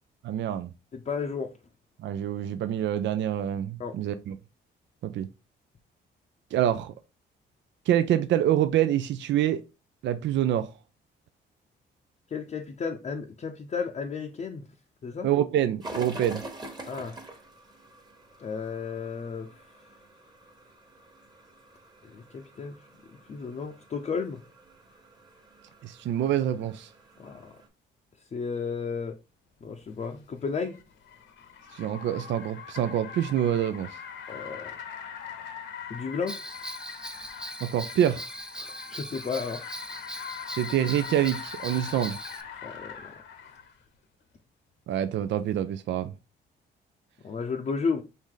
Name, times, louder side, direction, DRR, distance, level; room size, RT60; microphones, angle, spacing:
voice 1, 0.2-0.7 2.0-4.4 5.0-5.3 6.5-6.9 7.9-9.6 10.0-10.7 15.2-16.4 25.8-26.9 31.7-33.9 37.6-38.2 40.6-42.2 44.9-46.1, right 11 dB, 65° right, 0.4 m, -26 dB
voice 2, 0.9-1.5 3.8-3.9 12.3-14.6 15.0-15.3 16.9-17.2 18.4-19.5 22.1-22.8 23.3-24.4 27.2-27.5 28.3-29.2 29.6-30.8 34.3-34.7 35.9-36.4 38.6-39.6 42.6-42.9 47.2-48.0, left 5 dB, 35° left, 0.6 m, -33 dB
sound 1, 15.8-27.7, right 1 dB, 20° right, 1.2 m, -46 dB
Car, 29.8-43.8, left 7 dB, 70° left, 1.0 m, -42 dB
Bell, 36.3-42.4, right 1 dB, 5° right, 0.4 m, -40 dB
4.7 x 2.7 x 3.7 m
cardioid pair, 90°, 20 cm